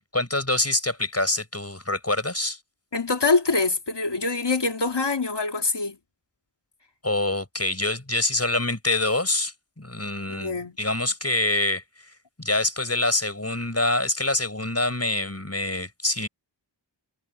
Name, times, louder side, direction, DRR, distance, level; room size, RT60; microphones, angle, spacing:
voice 1, 0.0-2.6 7.0-11.8 12.4-16.3, left 2 dB, 30° left, 6.2 m, -25 dB
voice 2, 2.9-6.0 10.3-10.7, left 3 dB, 60° left, 2.7 m, -24 dB
wide cardioid pair, 40°, 46 cm